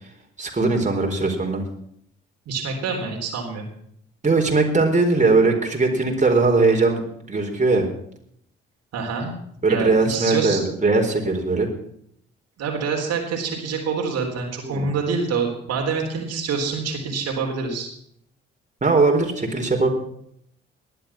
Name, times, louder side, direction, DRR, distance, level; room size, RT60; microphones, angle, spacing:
voice 1, 0.4-1.6 4.2-7.9 9.6-11.7 14.6-14.9 18.8-19.9, right 3 dB, 25° right, 1 dB, 4.1 m, -20 dB
voice 2, 2.5-3.6 8.9-9.3 9.7-10.6 12.6-17.9, right 5 dB, 60° right, 1 dB, 3.7 m, -26 dB
19.5 x 11.5 x 6.0 m, 0.70 s
figure-of-eight pair, 45°, 29 cm